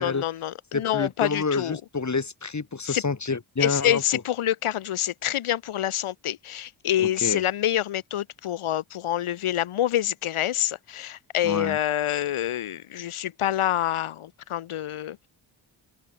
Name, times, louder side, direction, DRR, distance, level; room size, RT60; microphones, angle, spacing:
voice 1, 0.0-1.8 2.9-3.0 3.6-15.3, left 12 dB, 85° left, 1.8 m, -27 dB
voice 2, 0.7-4.0 7.0-7.4 11.4-11.8, left 4 dB, 35° left, 4.3 m, -28 dB
open air
cardioid pair, 75°, 49 cm